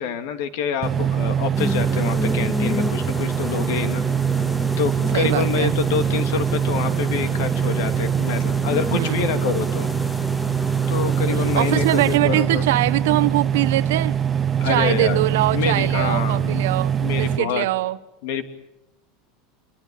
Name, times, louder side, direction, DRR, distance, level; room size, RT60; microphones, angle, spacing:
voice 1, 0.0-4.0 4.8-9.9 10.9-12.6 14.6-15.2 15.5-16.6 17.0-17.6 18.2-18.4, left 7 dB, 70° left, 2.8 m, -26 dB
sound 1, 0.8-17.4, right 8 dB, 20° right, 1.0 m, -23 dB
sound 2, 1.5-12.2, left 2 dB, 10° left, 1.0 m, -31 dB
voice 2, 5.1-5.8 8.9-9.3 11.4-14.2 14.6-18.0, right 16 dB, 80° right, 1.3 m, -22 dB
27.5 x 23.0 x 8.7 m
supercardioid pair, 145°, 0 cm